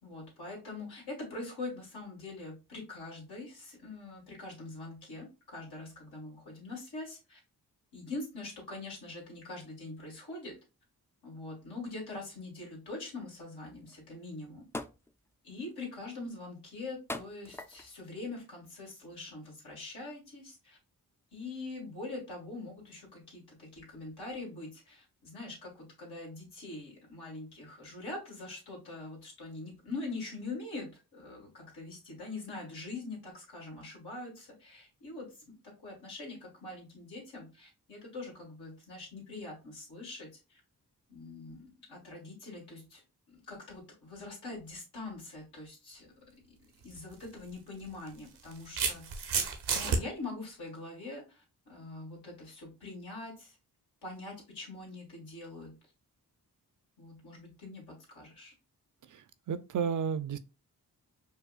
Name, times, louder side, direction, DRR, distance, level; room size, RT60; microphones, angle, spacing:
voice 1, 0.0-7.4 7.9-10.6 11.2-14.6 15.4-20.8 21.3-35.4 35.8-40.6 41.1-43.0 43.3-46.1 46.8-49.1 49.7-53.6 54.0-55.8 57.0-58.5, left 2 dB, 85° left, 1.9 m, -43 dB
sound 1, 13.9-14.0 14.7-15.1 15.7-16.0 17.1-18.0 18.7-18.9, left 2 dB, 5° left, 0.3 m, -41 dB
sound 2, 46.8-47.0 48.1-50.0, right 5 dB, 90° right, 0.8 m, -31 dB
voice 2, 59.1-60.4, right 7 dB, 50° right, 0.5 m, -33 dB
5.3 x 2.1 x 2.4 m
cardioid pair, 50°, 38 cm